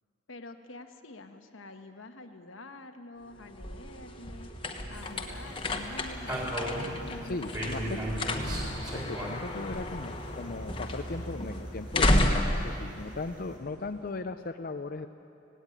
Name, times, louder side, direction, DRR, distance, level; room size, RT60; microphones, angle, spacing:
voice 1, 0.3-4.5 4.9-8.7, left 2 dB, 80° left, 6 dB, 1.4 m, -47 dB
sound 1, 3.2-14.0, left 1 dB, 25° left, 1.4 m, -32 dB
sound 2, 4.9-13.6, right 1 dB, 20° right, 3.8 m, -39 dB
voice 2, 7.2-8.0 8.9-15.1, left 3 dB, 45° left, 7 dB, 0.5 m, -37 dB
17.5 x 17.0 x 9.8 m, 2.6 s
head